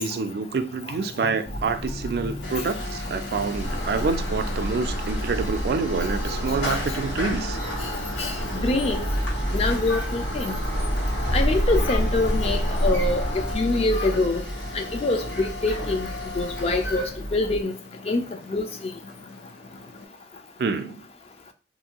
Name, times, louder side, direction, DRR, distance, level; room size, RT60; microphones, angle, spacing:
voice 1, 0.0-7.6 20.6-21.0, right 4 dB, 60° right, 0.3 m, -27 dB
sound 1, 1.5-17.6, equal, 70° left, 1.5 m, -34 dB
sound 2, 2.4-20.1, left 2 dB, 90° left, 1.0 m, -36 dB
sound 3, 3.6-13.6, equal, 50° left, 1.3 m, -28 dB
voice 2, 8.2-9.0 9.5-10.6 11.3-14.4 14.7-16.1 16.4-17.7 18.1-18.7, left 2 dB, 35° left, 0.4 m, -25 dB
2.7 x 2.6 x 2.8 m
head